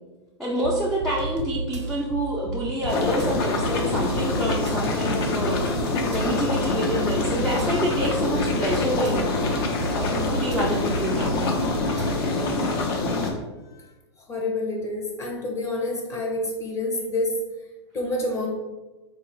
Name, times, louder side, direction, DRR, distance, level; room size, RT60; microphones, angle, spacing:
voice 1, 0.4-5.7 6.1-9.2 10.0-11.5, equal, ahead, -5 dB, 0.4 m, -28 dB
sound 1, 0.6-12.3, right 3 dB, 85° right, 0.5 m, -33 dB
sound 2, 2.9-13.3, left 3 dB, 55° left, 0.7 m, -25 dB
voice 2, 14.3-17.4 17.9-18.5, left 2 dB, 20° left, 0 dB, 0.7 m, -28 dB
3.8 x 2.4 x 3.1 m, 1.1 s
hypercardioid pair, 130°, 15 cm